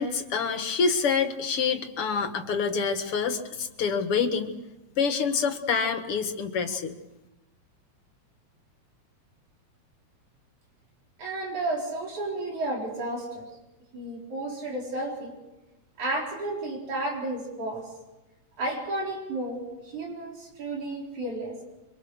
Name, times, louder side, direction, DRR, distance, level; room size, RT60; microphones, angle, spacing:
voice 1, 0.0-4.5 5.0-6.9, left 5 dB, 55° left, 6 dB, 2.6 m, -27 dB
voice 2, 11.2-13.5 13.9-15.3 16.0-17.9 18.6-21.6, right 2 dB, 85° right, -1 dB, 5.7 m, -32 dB
26.0 x 25.0 x 6.4 m, 1.0 s
omnidirectional pair, 3.3 m